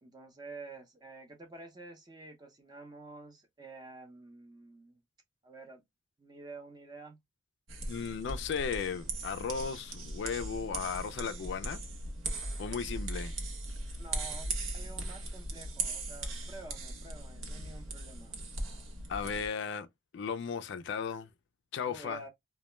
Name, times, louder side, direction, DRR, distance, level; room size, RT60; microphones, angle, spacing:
voice 1, 0.0-5.0 5.4-5.8 6.2-7.2 14.0-18.4 21.8-22.3, right 3 dB, 20° right, 0.5 m, -49 dB
sound 1, 7.7-19.5, right 2 dB, 80° right, 0.7 m, -39 dB
voice 2, 7.9-11.8 12.6-13.3 19.1-19.9 20.1-21.3 21.7-22.2, left 6 dB, 60° left, 0.3 m, -35 dB
2.2 x 2.0 x 3.0 m
head